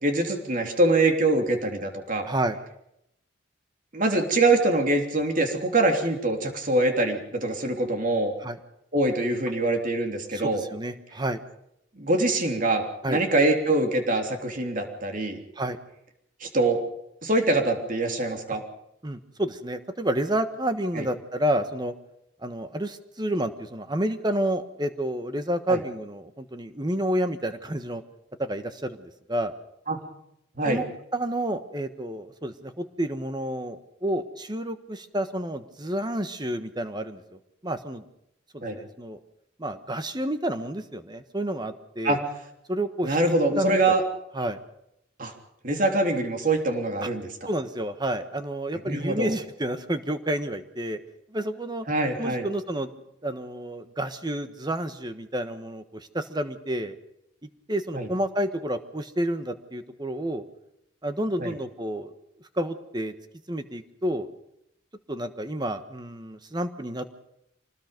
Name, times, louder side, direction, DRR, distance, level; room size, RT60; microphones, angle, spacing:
voice 1, 0.0-2.3 3.9-8.3 8.9-10.6 12.0-15.4 16.4-16.8 17.2-18.6 20.9-21.1 25.7-25.8 29.9-30.0 30.6-30.8 38.6-38.8 42.0-42.2 43.0-44.0 45.2-45.3 45.6-47.5 48.8-49.3 51.9-52.5 57.9-58.1 61.4-61.5, right 2 dB, 45° right, 4 dB, 3.3 m, -24 dB
voice 2, 2.2-2.6 8.4-8.6 10.3-11.4 13.0-13.2 15.6-15.8 19.0-21.9 22.4-28.0 28.4-29.5 30.6-30.8 31.1-38.0 38.5-39.2 39.6-42.2 42.7-43.2 43.5-43.9 44.3-44.6 47.0-47.1 47.5-51.0 51.3-51.8 52.2-52.9 53.2-56.9 57.7-60.4 61.0-62.1 62.6-63.1 63.5-64.3 65.1-67.2, right 1 dB, 20° right, 9 dB, 1.3 m, -30 dB
25.5 x 19.5 x 5.3 m, 0.79 s
head